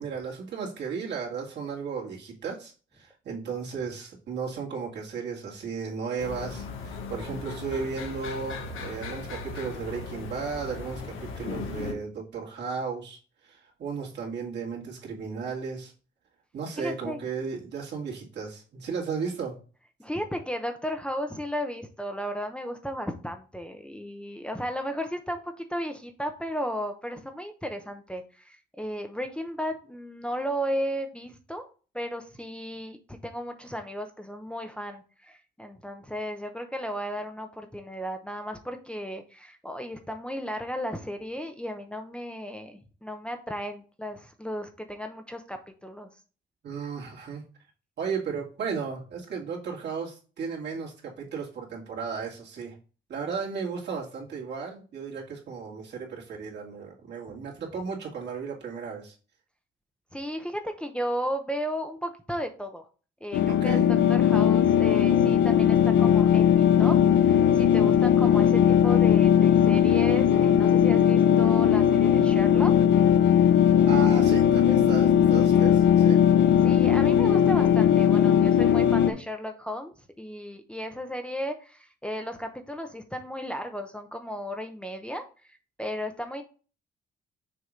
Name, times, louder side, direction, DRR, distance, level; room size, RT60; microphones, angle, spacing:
voice 1, 0.0-13.2 13.4-15.9 16.5-19.6 46.6-47.4 48.0-52.7 53.1-59.1 63.5-63.9 73.9-76.2, right 5 dB, 60° right, -3 dB, 2.5 m, -35 dB
sound 1, 6.2-11.9, left 4 dB, 85° left, 1.4 m, -37 dB
voice 2, 16.8-17.2 20.0-31.6 31.9-46.1 57.3-57.4 60.1-62.8 63.2-63.8 64.1-67.0 67.2-72.7 76.6-86.4, equal, 5° left, 4 dB, 0.8 m, -34 dB
sound 2, 63.3-79.1, left 9 dB, 70° left, 0.6 m, -19 dB
6.6 x 2.9 x 5.1 m, 0.36 s
cardioid pair, 90°, 20 cm